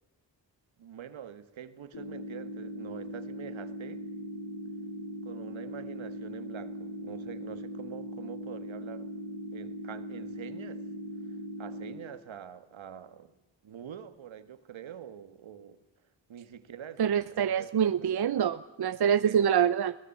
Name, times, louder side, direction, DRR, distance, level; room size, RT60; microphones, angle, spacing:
voice 1, 0.8-4.1 5.2-9.1 9.5-10.8 11.6-13.3 13.6-15.8 16.3-18.1 19.2-19.4, right 9 dB, 80° right, 11 dB, 1.7 m, -45 dB
sound 1, 1.9-11.9, equal, 65° left, 5.1 m, -40 dB
voice 2, 17.0-19.9, right 8 dB, 55° right, 13 dB, 0.8 m, -25 dB
21.5 x 18.5 x 8.6 m, 0.97 s
cardioid pair, 90°, 46 cm